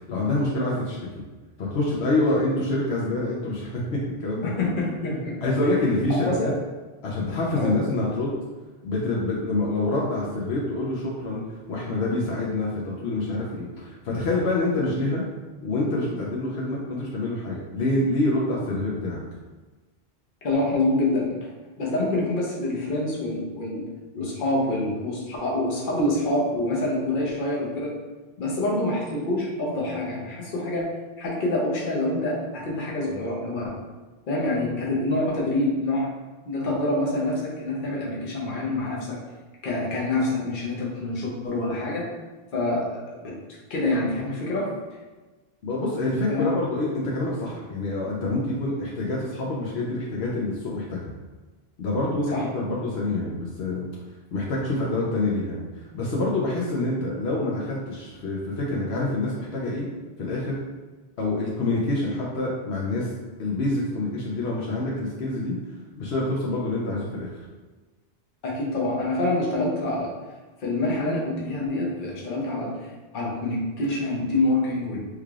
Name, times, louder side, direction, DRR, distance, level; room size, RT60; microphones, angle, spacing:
voice 1, 0.1-1.0 1.6-4.7 5.1-6.5 7.0-8.4 8.8-15.2 15.6-19.2 45.6-51.1 51.8-53.9 54.3-55.6 55.9-59.8 60.2-60.6 61.2-63.1 63.4-65.5 66.0-67.3, left 2 dB, 75° left, -4 dB, 0.9 m, -26 dB
voice 2, 4.6-5.4 6.2-6.5 7.2-7.7 20.4-21.5 21.8-23.8 24.1-27.9 28.4-33.7 34.3-36.1 36.5-39.2 39.6-42.1 42.5-43.3 43.7-44.7 46.3-46.6 52.3-52.4 68.4-70.1 70.6-75.0, left 2 dB, 55° left, -4 dB, 0.9 m, -26 dB
3.4 x 3.2 x 2.4 m, 1.3 s
omnidirectional pair, 1.1 m